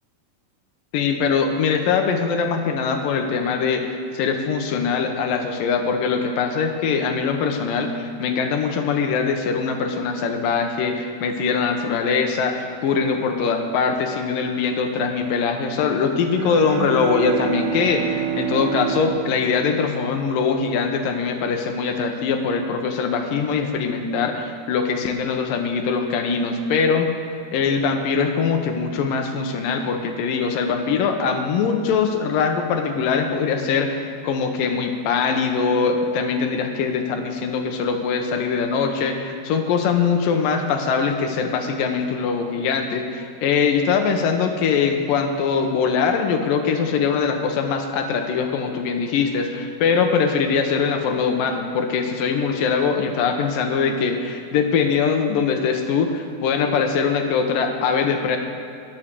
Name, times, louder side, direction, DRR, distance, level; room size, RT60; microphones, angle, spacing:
voice 1, 0.9-27.1 27.5-58.4, left 5 dB, 80° left, 5 dB, 2.7 m, -22 dB
Bowed string instrument, 16.3-20.6, right 9 dB, 85° right, 2.9 m, -28 dB
20.5 x 7.4 x 6.8 m, 2.5 s
omnidirectional pair, 4.0 m